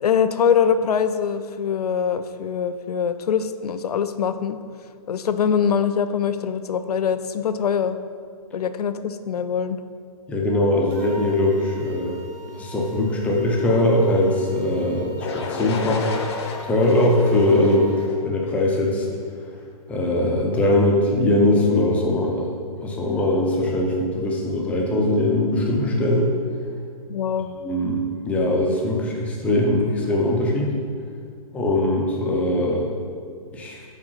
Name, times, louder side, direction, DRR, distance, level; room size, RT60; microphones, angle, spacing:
voice 1, 0.0-4.6 5.1-8.0 8.5-9.8 27.1-27.6, left 7 dB, 85° left, 11 dB, 0.5 m, -23 dB
voice 2, 10.3-12.2 12.5-16.1 16.6-19.1 19.9-22.5 22.8-26.3 27.6-30.7 31.5-32.9 33.5-33.8, left 1 dB, 5° left, -1 dB, 0.5 m, -21 dB
sound 1, 10.9-18.1, right 1 dB, 30° right, 0.7 m, -43 dB
sound 2, 15.2-19.1, left 4 dB, 45° left, 0.7 m, -32 dB
5.0 x 4.7 x 5.6 m, 2.1 s
hypercardioid pair, 160°, 19 cm